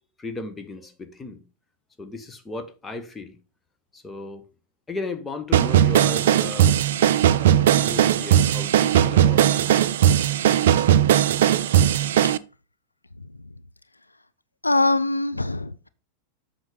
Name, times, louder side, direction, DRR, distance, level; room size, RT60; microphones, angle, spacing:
voice 1, 0.2-1.4 2.0-3.4 3.9-4.4 4.9-6.7 7.4-9.7, left 3 dB, 15° left, 1.3 m, -35 dB
sound 1, 5.5-12.4, right 10 dB, 55° right, 0.5 m, -18 dB
voice 2, 14.6-15.9, left 2 dB, 85° left, 0.4 m, -22 dB
7.9 x 5.9 x 5.0 m
figure-of-eight pair, 90°, 0 cm